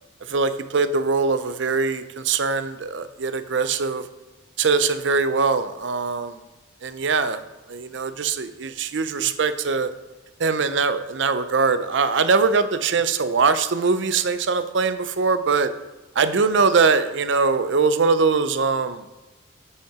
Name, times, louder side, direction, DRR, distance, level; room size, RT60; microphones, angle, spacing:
voice 1, 0.3-4.0 4.6-6.4 6.8-7.4 7.7-9.9 10.4-15.7 16.2-19.0, right 4 dB, 65° right, 12 dB, 0.5 m, -22 dB
6.5 x 5.6 x 4.8 m, 1.2 s
head